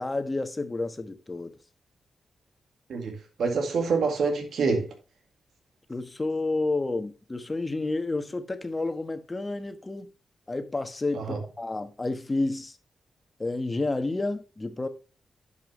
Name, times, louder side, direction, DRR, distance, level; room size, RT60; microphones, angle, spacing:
voice 1, 0.0-1.6 5.9-10.1 10.5-12.8 13.4-14.9, left 2 dB, 30° left, 1.3 m, -30 dB
voice 2, 2.9-4.9 11.1-11.4, right 4 dB, 75° right, 1.8 m, -27 dB
10.5 x 5.6 x 3.2 m
supercardioid pair, 50°, 0 cm